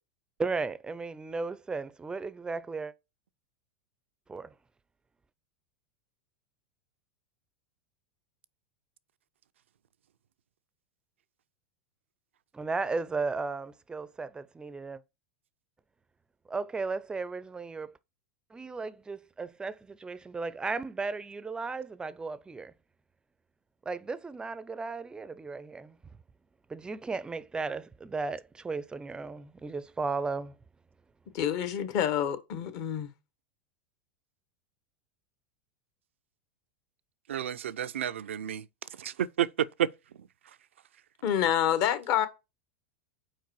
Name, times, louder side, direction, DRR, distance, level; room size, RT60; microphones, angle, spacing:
voice 1, 0.4-2.9 4.3-4.5 12.5-15.0 16.5-17.9 18.5-22.7 23.9-26.0 26.7-30.6, right 4 dB, 15° right, 0.4 m, -35 dB
voice 2, 31.3-33.1 41.2-42.3, left 9 dB, 55° left, 1.0 m, -27 dB
voice 3, 37.3-38.6 39.0-39.9, right 10 dB, 90° right, 0.3 m, -30 dB
4.7 x 4.5 x 4.6 m
hypercardioid pair, 105°, 6 cm